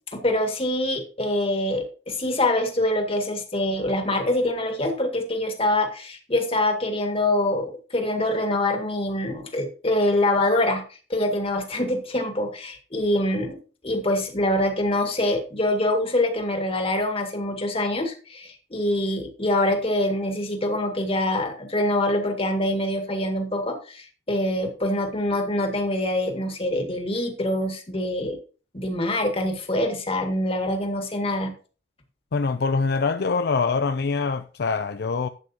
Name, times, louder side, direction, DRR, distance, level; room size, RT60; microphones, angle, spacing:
voice 1, 0.1-13.6 13.8-28.4 28.7-31.5, left 1 dB, 30° left, 2.0 m, -25 dB
voice 2, 32.3-35.3, left 4 dB, 60° left, 0.5 m, -24 dB
12.0 x 8.4 x 2.9 m
head